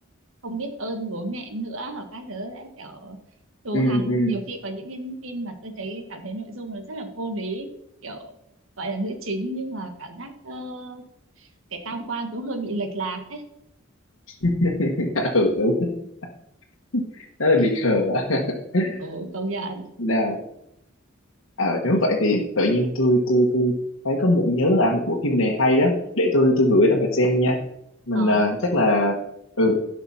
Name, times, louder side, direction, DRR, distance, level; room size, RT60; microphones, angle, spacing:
voice 1, 0.4-3.2 3.6-7.7 8.0-8.3 8.8-11.0 11.4-13.4 19.0-19.8 28.1-28.4, right 2 dB, 80° right, 6 dB, 1.6 m, -32 dB
voice 2, 3.7-4.3 14.4-15.9 16.9-17.0 17.4-19.0 20.0-20.4 21.6-23.7 24.0-27.6 28.1-29.2 29.6-29.7, left 1 dB, 75° left, -3 dB, 1.4 m, -20 dB
11.5 x 5.9 x 5.6 m, 0.80 s
head